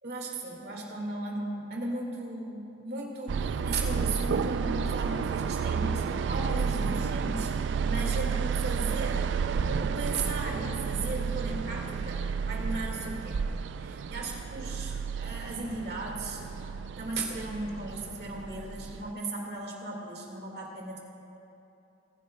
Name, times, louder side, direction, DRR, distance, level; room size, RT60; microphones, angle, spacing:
voice 1, 0.0-13.5 13.7-21.0, right 2 dB, 60° right, -1 dB, 1.8 m, -36 dB
sound 1, 3.3-19.1, right 6 dB, 80° right, 0.3 m, -31 dB
sound 2, 8.0-13.0, equal, 15° left, 1.1 m, -54 dB
21.5 x 10.0 x 2.2 m, 2.8 s
head